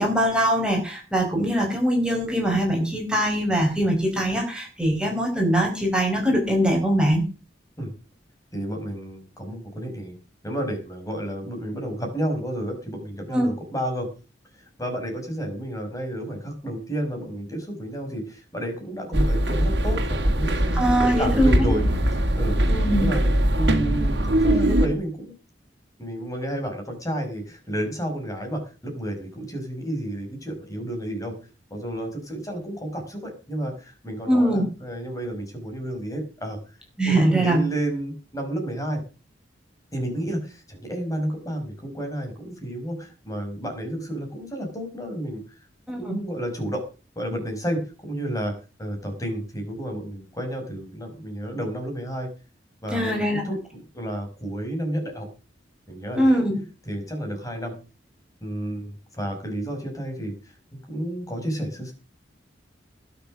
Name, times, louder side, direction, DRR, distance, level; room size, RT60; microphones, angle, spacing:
voice 1, 0.0-7.2 13.3-13.5 20.7-21.7 22.7-23.1 34.3-34.6 37.0-37.6 45.9-46.2 52.9-53.4 56.2-56.6, equal, 5° right, 1 dB, 4.7 m, -22 dB
voice 2, 8.5-10.2 10.4-14.1 14.5-21.8 22.1-25.4 26.0-31.3 31.7-36.6 37.0-39.0 39.9-45.6 45.9-46.8 47.2-48.5 48.8-52.3 52.8-55.3 55.9-56.4 56.9-57.7 58.4-60.3 60.7-61.9, right 1 dB, 20° left, 4 dB, 5.3 m, -31 dB
sound 1, 19.1-24.9, right 1 dB, 65° right, 3.0 m, -21 dB
20.0 x 7.3 x 6.3 m, 0.34 s
head